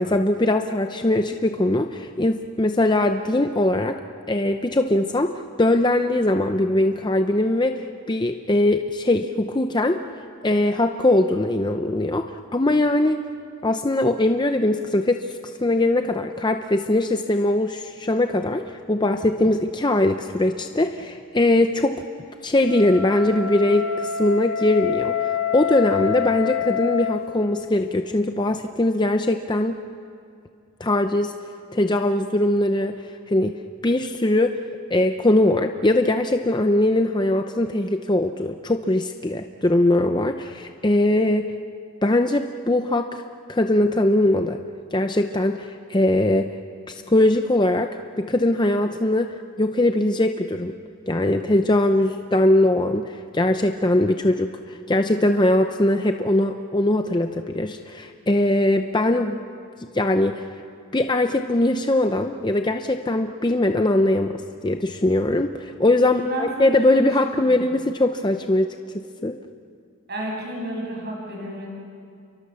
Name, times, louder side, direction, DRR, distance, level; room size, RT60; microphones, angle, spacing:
voice 1, 0.0-4.0 4.3-5.3 5.6-10.0 10.4-13.2 13.6-21.9 22.4-25.2 25.5-29.8 30.8-31.3 31.7-33.0 33.3-33.6 33.8-34.6 34.9-41.5 42.0-43.2 43.5-44.6 44.9-46.5 46.9-47.9 48.2-49.3 49.6-50.7 51.1-59.4 59.8-60.4 60.9-69.4, left 1 dB, 20° left, 6 dB, 0.6 m, -21 dB
Wind instrument woodwind instrument, 22.6-27.2, left 9 dB, 75° left, 1.4 m, -27 dB
voice 2, 66.0-67.1 67.4-67.6 70.1-71.7, right 1 dB, 45° right, -2 dB, 7.7 m, -31 dB
29.5 x 23.5 x 7.0 m, 2.3 s
head